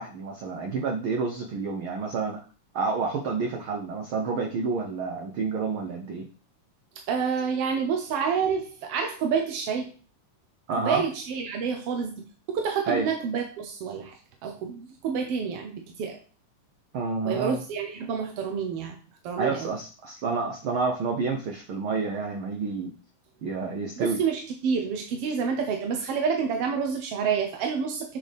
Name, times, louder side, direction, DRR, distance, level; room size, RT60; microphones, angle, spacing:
voice 1, 0.0-2.4 2.7-6.3 10.7-11.1 12.8-13.1 16.9-17.6 19.4-22.9 23.4-24.2, right 4 dB, 90° right, 2 dB, 1.1 m, -29 dB
voice 2, 7.1-9.9 10.8-14.1 14.4-16.2 17.2-19.0 19.2-19.7 24.0-28.2, right 6 dB, 70° right, 3 dB, 1.5 m, -28 dB
7.9 x 6.3 x 3.5 m, 0.38 s
omnidirectional pair, 3.7 m